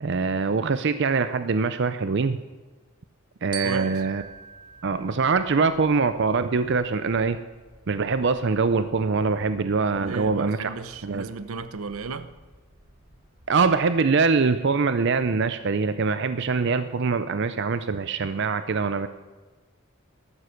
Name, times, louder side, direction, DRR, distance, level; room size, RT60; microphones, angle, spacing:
voice 1, 0.0-2.4 3.4-4.2 4.8-7.4 7.9-10.7 11.0-11.2 13.5-19.1, right 4 dB, 55° right, 11 dB, 0.5 m, -23 dB
Glockenspiel, 3.5-6.0, right 7 dB, 20° right, 1.1 m, -40 dB
voice 2, 3.6-4.1 10.0-12.3, right 4 dB, 85° right, 12 dB, 0.8 m, -34 dB
sound 1, 3.9-13.8, equal, 40° right, 5.7 m, -55 dB
13.0 x 12.5 x 6.5 m, 1.3 s
head